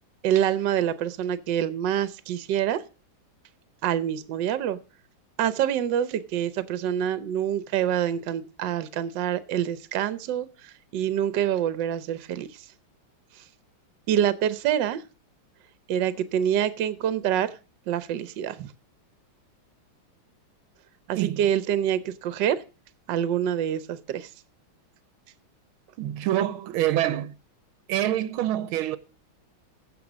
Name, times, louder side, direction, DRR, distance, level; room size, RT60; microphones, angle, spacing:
voice 1, 0.2-2.8 3.8-4.8 5.4-12.5 14.1-15.0 15.9-17.5 17.9-18.7 21.1-22.6 23.1-24.3, right 10 dB, 65° right, 1.4 m, -26 dB
voice 2, 26.0-27.3 27.9-29.0, right 13 dB, 85° right, 1.6 m, -26 dB
15.0 x 5.6 x 6.1 m
omnidirectional pair, 2.2 m